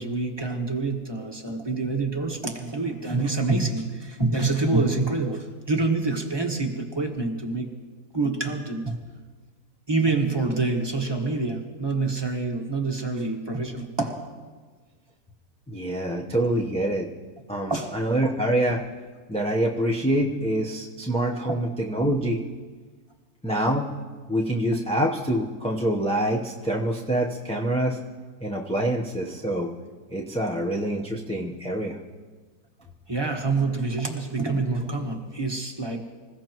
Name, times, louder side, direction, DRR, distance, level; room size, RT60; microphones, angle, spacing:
voice 1, 0.0-7.7 8.1-9.0 9.9-14.2 17.7-17.9 21.5-21.6 23.4-23.5 33.1-36.0, right 3 dB, 15° right, 0 dB, 1.4 m, -26 dB
voice 2, 15.7-17.1 17.5-18.8 19.3-22.4 23.4-23.9 24.3-28.0 28.4-29.7 30.1-32.0, right 1 dB, 5° left, -2 dB, 0.7 m, -25 dB
26.0 x 15.5 x 3.1 m, 1.4 s
omnidirectional pair, 1.7 m